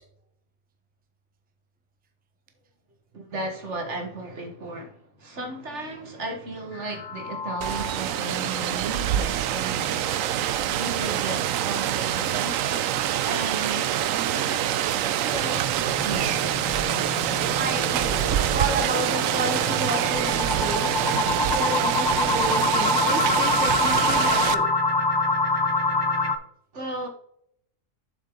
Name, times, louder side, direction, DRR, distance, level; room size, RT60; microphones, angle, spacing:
voice 1, 3.1-10.2 10.7-15.7 16.0-16.4 26.7-27.1, right 2 dB, 60° right, 2.0 m, -35 dB
sound 1, 6.7-8.2 8.6-8.7 9.1-9.2 9.6-9.7 14.5-26.4, left 2 dB, 25° left, 0.5 m, -26 dB
Rain, 7.6-24.6, right 11 dB, 75° right, 1.0 m, -25 dB
voice 2, 17.2-24.7, right 2 dB, 10° right, 0.8 m, -32 dB
7.4 x 6.6 x 3.9 m
omnidirectional pair, 1.4 m